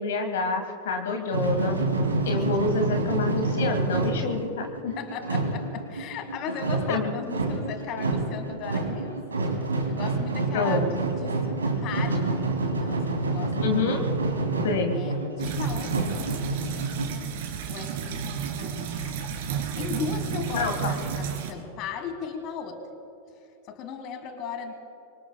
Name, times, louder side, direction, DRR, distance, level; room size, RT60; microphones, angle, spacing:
voice 1, 0.0-1.8 2.2-4.9 6.9-7.1 10.5-11.0 13.6-14.1 14.6-15.0 20.5-21.0, left 3 dB, 60° left, 5 dB, 1.5 m, -27 dB
sound 1, 1.3-17.1, right 2 dB, 75° right, 2.5 m, -28 dB
voice 2, 4.9-9.2 9.9-11.4 11.6-12.4 12.8-13.6 14.9-17.3 17.7-19.2 19.8-22.9 23.6-24.7, left 6 dB, 40° left, 8 dB, 1.6 m, -37 dB
sound 2, 15.4-21.5, right 7 dB, 55° right, 2.6 m, -32 dB
25.0 x 24.5 x 2.3 m, 2.7 s
figure-of-eight pair, 90°, 0 cm